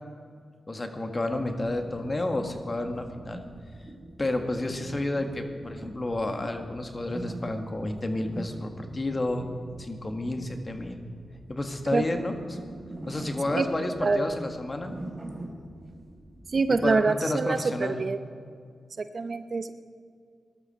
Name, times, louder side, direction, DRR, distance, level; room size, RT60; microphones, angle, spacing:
voice 1, 0.7-3.4 4.2-9.5 9.8-11.0 11.5-12.6 13.1-14.9 16.7-18.0, left 2 dB, 35° left, 5 dB, 1.8 m, -30 dB
sound 1, 1.3-16.8, right 1 dB, 20° right, 4.4 m, -43 dB
voice 2, 14.0-14.4 16.5-18.2 19.0-19.7, right 4 dB, 55° right, 10 dB, 0.8 m, -26 dB
18.5 x 12.5 x 4.3 m, 2.1 s
cardioid pair, 50°, 0 cm